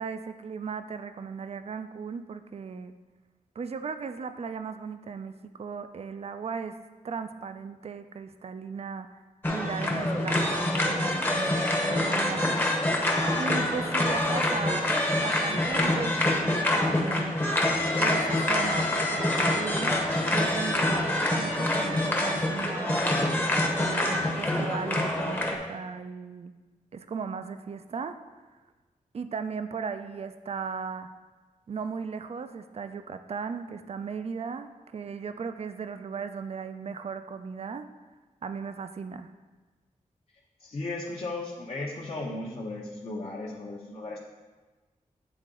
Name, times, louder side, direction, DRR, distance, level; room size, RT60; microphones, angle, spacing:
voice 1, 0.0-2.9 3.6-9.2 9.5-12.6 13.4-17.4 18.0-20.0 20.3-23.1 23.7-26.5 26.9-28.2 29.1-31.1 31.7-37.9 38.4-39.3, right 5 dB, 45° right, 9 dB, 0.4 m, -37 dB
sound 1, 9.4-25.6, left 1 dB, 15° left, 0.8 m, -26 dB
voice 2, 40.6-44.2, left 2 dB, 45° left, -4 dB, 0.7 m, -35 dB
9.0 x 3.7 x 3.8 m, 1.3 s
wide cardioid pair, 120°, 14 cm